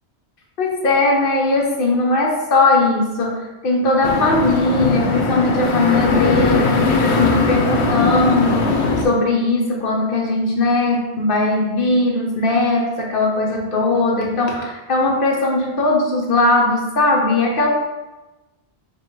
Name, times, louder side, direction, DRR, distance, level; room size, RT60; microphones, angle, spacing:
voice 1, 0.6-17.7, left 2 dB, 55° left, -1 dB, 1.0 m, -19 dB
sound 1, 4.0-9.0, left 4 dB, 80° left, 0.9 m, -19 dB
3.3 x 2.7 x 4.5 m, 1.1 s
omnidirectional pair, 1.1 m